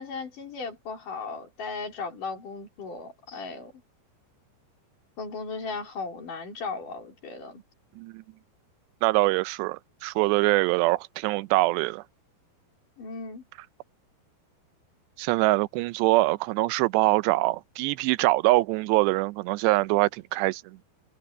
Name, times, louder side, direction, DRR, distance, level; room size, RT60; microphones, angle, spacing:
voice 1, 0.0-3.7 5.2-7.6 13.0-13.5, left 4 dB, 50° left, 5.4 m, -36 dB
voice 2, 9.0-12.0 15.2-20.8, right 20 dB, 90° right, 2.8 m, -24 dB
omnidirectional pair, 4.8 m